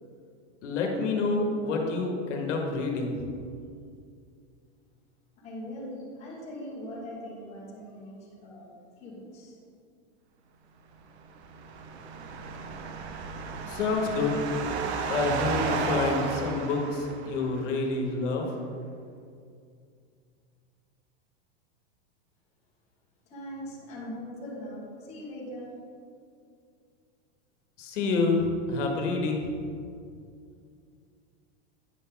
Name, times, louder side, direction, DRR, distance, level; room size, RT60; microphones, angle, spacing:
voice 1, 0.6-3.3 13.7-14.5 15.1-18.5 27.8-29.6, left 3 dB, 85° left, 1 dB, 1.5 m, -28 dB
voice 2, 5.4-8.7 9.0-9.6 23.3-25.7, equal, 20° left, -6 dB, 1.7 m, -41 dB
sound 1, 11.3-17.6, right 5 dB, 65° right, 0.8 m, -33 dB
9.3 x 5.9 x 3.9 m, 2.4 s
supercardioid pair, 175°, 35 cm